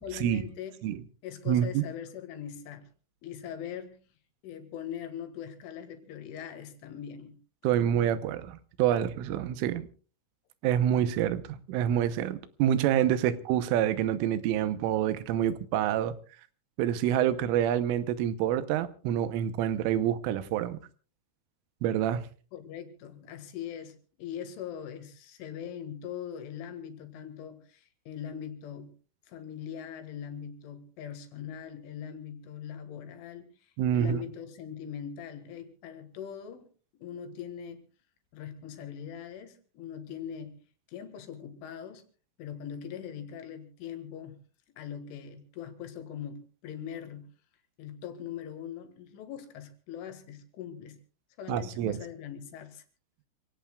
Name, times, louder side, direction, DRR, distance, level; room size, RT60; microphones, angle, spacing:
voice 1, 0.0-0.8 1.2-2.9 3.2-4.0 4.4-7.4 13.2-13.3 22.5-28.9 29.3-36.7 36.9-37.8 38.3-40.6 40.9-42.0 42.4-44.4 44.8-47.3 47.8-51.0 51.4-52.8, left 9 dB, 75° left, 4.1 m, -41 dB
voice 2, 1.5-1.8 7.6-9.9 10.6-11.4 11.7-16.1 16.8-20.8 21.8-22.2 33.8-34.2 51.5-52.0, right 10 dB, 85° right, 3.4 m, -27 dB
27.0 x 17.5 x 2.3 m
omnidirectional pair, 5.7 m